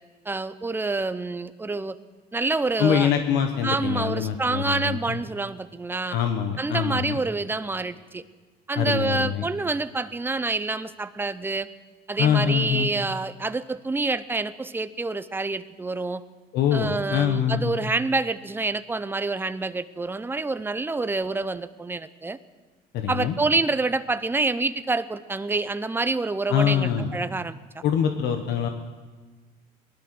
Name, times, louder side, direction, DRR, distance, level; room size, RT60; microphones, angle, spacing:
voice 1, 0.3-2.0 2.3-3.1 3.6-6.2 6.6-8.2 8.7-11.7 12.1-16.2 16.7-22.4 23.1-27.6, right 3 dB, 10° right, 13 dB, 0.7 m, -27 dB
voice 2, 2.8-5.2 6.1-7.2 8.8-9.4 12.2-12.9 16.5-17.8 22.9-23.3 26.5-27.1 27.8-28.7, left 8 dB, 80° left, 5 dB, 1.2 m, -24 dB
19.5 x 12.0 x 6.2 m, 1.4 s
cardioid pair, 110°, 17 cm